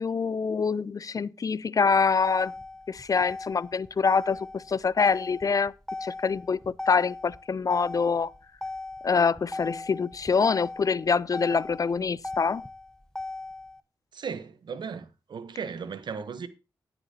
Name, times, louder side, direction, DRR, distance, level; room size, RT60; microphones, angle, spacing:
voice 1, 0.0-2.5 2.9-5.7 6.0-8.3 9.0-12.6, left 5 dB, 50° left, 0.4 m, -25 dB
Motor vehicle (road), 1.8-13.8, left 2 dB, 10° left, 0.7 m, -38 dB
voice 2, 14.1-16.5, right 6 dB, 70° right, 1.0 m, -36 dB
18.5 x 6.9 x 2.8 m
supercardioid pair, 45°, 8 cm